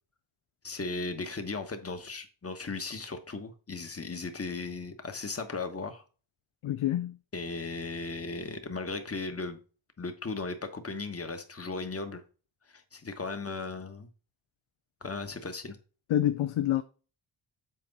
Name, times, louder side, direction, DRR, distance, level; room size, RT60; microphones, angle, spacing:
voice 1, 0.6-6.0 7.3-9.6 10.0-12.2 12.7-14.1 15.0-15.8, left 3 dB, 30° left, 1.2 m, -36 dB
voice 2, 6.6-7.2 16.1-16.8, left 12 dB, 85° left, 0.6 m, -27 dB
7.7 x 4.4 x 4.0 m
wide cardioid pair, 85°, 48 cm